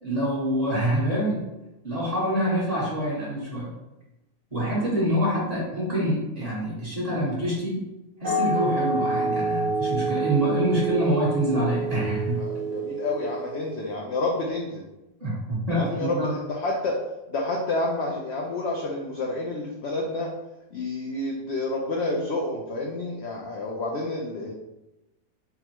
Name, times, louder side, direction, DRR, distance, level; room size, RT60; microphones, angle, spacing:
voice 1, 0.0-1.5 1.8-3.7 4.5-7.8 8.2-12.4 15.2-16.3, equal, 30° right, -7 dB, 1.1 m, -26 dB
sound 1, 8.2-13.7, right 3 dB, 60° right, 1.3 m, -28 dB
voice 2, 12.4-14.8 15.7-17.0 17.3-20.3 20.7-24.5, left 2 dB, 65° left, -1 dB, 0.6 m, -29 dB
3.7 x 2.2 x 4.4 m, 0.97 s
omnidirectional pair, 1.6 m